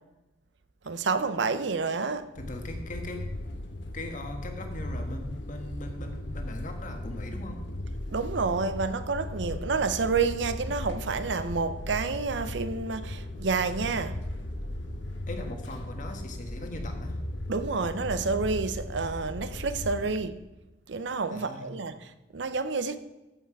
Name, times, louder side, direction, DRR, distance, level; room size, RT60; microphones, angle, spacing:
voice 1, 0.8-2.3 8.1-14.2 17.5-20.4 20.9-23.0, right 4 dB, 75° right, 0.6 m, -29 dB
sound 1, 2.4-20.1, left 1 dB, 80° left, 1.0 m, -37 dB
voice 2, 2.4-3.3 3.9-7.6 15.3-17.2 21.3-21.7, left 1 dB, 45° left, 1.4 m, -39 dB
14.0 x 5.8 x 4.7 m
head